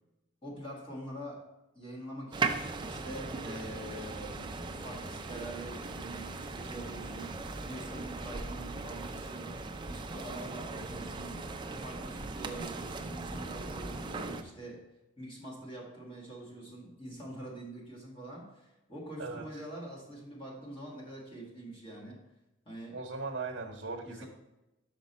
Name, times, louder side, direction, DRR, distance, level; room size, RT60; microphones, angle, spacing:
voice 1, 0.4-11.4 11.8-14.9 15.2-22.2 22.6-23.0 24.0-24.3, right 1 dB, 25° left, -4 dB, 1.5 m, -45 dB
sound 1, 2.3-14.4, right 3 dB, 25° right, 0.4 m, -38 dB
voice 2, 22.9-24.3, right 3 dB, 70° right, 1 dB, 0.9 m, -38 dB
5.9 x 5.2 x 4.2 m, 0.97 s
head